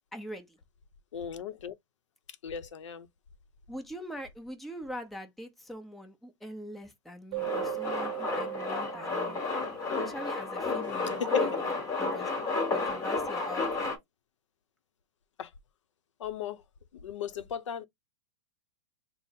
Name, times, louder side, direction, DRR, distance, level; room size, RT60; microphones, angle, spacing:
voice 1, 0.1-0.6 3.7-9.4 10.0-11.5 12.0-12.3 12.7-13.9, equal, ahead, 0.7 m, -43 dB
voice 2, 1.1-1.7 2.4-3.1 11.2-11.4 15.4-15.5 16.2-16.6 16.9-17.9, left 7 dB, 85° left, 0.6 m, -35 dB
Keyboard (musical), 7.3-10.1, right 30 dB, 50° right, 0.4 m, -38 dB
Male speech man speaking, 7.4-14.0, left 3 dB, 20° left, 1.3 m, -32 dB
3.7 x 2.0 x 4.1 m
hypercardioid pair, 135°, 15 cm